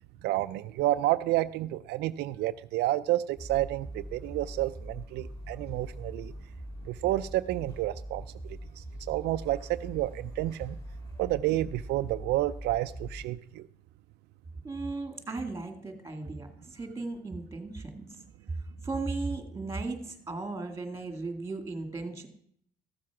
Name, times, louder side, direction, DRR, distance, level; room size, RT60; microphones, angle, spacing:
voice 1, 0.2-6.3 6.8-10.8 11.2-13.7, right 15 dB, 80° right, 11 dB, 0.4 m, -30 dB
sound 1, 3.4-13.3, right 1 dB, 20° left, 4.6 m, -42 dB
voice 2, 14.6-22.3, right 3 dB, 15° right, 7 dB, 2.1 m, -36 dB
14.0 x 7.4 x 5.9 m, 0.65 s
cardioid pair, 110°, 17 cm